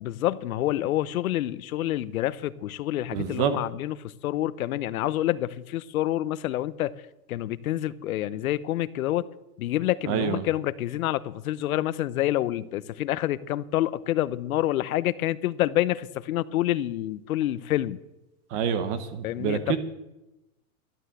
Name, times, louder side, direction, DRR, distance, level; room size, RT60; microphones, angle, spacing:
voice 1, 0.0-6.9 7.3-9.3 9.6-18.0 19.2-19.8, left 14 dB, 80° left, 0.8 m, -27 dB
voice 2, 3.1-3.6 10.1-10.4 18.5-19.8, right 8 dB, 30° right, 1.2 m, -27 dB
12.0 x 11.5 x 7.7 m
supercardioid pair, 170°, 42 cm